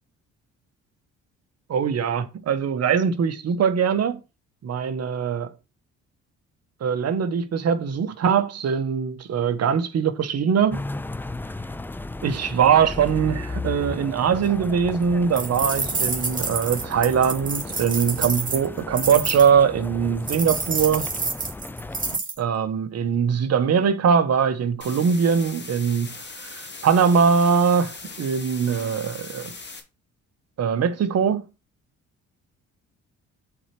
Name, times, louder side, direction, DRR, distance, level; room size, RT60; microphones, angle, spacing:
voice 1, 1.7-4.2 4.6-5.5 6.8-10.8 12.2-21.1 22.4-29.5 30.6-31.4, right 7 dB, 55° right, 1.2 m, -22 dB
sound 1, 10.7-22.2, left 2 dB, 5° left, 0.4 m, -35 dB
sound 2, 15.4-19.5 20.3-22.4, right 4 dB, 25° right, 2.2 m, -28 dB
sound 3, 24.8-29.8, left 4 dB, 35° left, 2.2 m, -39 dB
6.5 x 4.5 x 6.0 m
cardioid pair, 90°, 30 cm